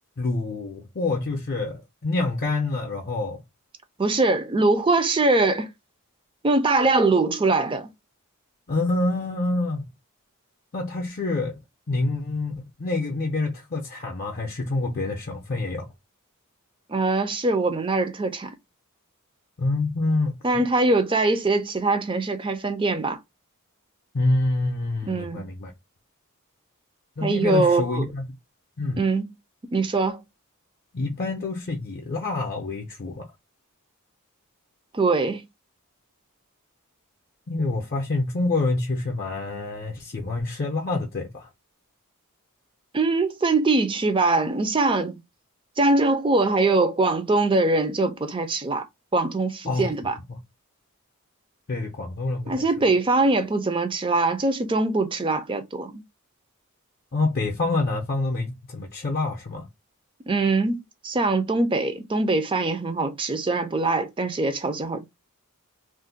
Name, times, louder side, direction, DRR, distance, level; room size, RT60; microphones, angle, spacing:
voice 1, 0.2-3.4 8.7-9.9 10.7-11.6 11.9-15.9 19.6-20.4 24.1-25.7 27.2-28.2 28.8-29.1 30.9-33.3 37.5-41.5 49.7-49.9 50.3-50.4 51.7-52.9 57.1-59.7, left 2 dB, 40° left, 0.5 m, -27 dB
voice 2, 4.0-5.7 6.4-7.9 16.9-18.5 20.4-23.2 25.1-25.5 27.2-28.1 29.0-29.3 29.7-30.2 34.9-35.4 42.9-45.2 45.8-48.8 49.1-50.1 52.5-56.0 60.3-60.8 61.0-65.1, right 3 dB, 20° right, 0.4 m, -22 dB
2.5 x 2.1 x 3.8 m
head